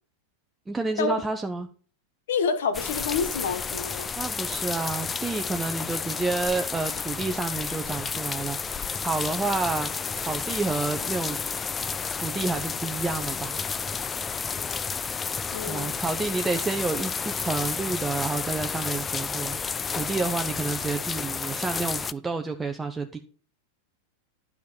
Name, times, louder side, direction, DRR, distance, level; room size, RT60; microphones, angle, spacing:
voice 1, 0.7-1.7 4.1-11.4 12.2-13.6 15.7-23.2, right 3 dB, 10° right, 0.9 m, -30 dB
voice 2, 2.3-4.1 15.5-16.0, left 5 dB, 60° left, 1.5 m, -28 dB
sound 1, 2.7-22.1, left 5 dB, 20° left, 0.5 m, -31 dB
11.5 x 6.0 x 7.0 m
figure-of-eight pair, 90°, 0 cm